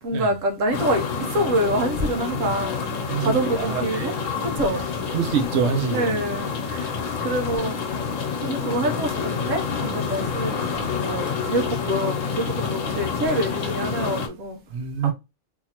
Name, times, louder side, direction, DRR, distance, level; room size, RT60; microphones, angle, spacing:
voice 1, 0.0-4.1 4.4-4.8 5.9-6.9 7.2-7.9 8.4-14.6 15.0-15.1, right 1 dB, 85° right, 1.3 m, -26 dB
sound 1, 0.7-14.3, left 5 dB, 85° left, 1.1 m, -28 dB
voice 2, 3.1-4.1 5.1-6.1 14.7-15.1, right 7 dB, 65° right, 0.9 m, -25 dB
3.6 x 2.7 x 2.8 m
omnidirectional pair, 1.3 m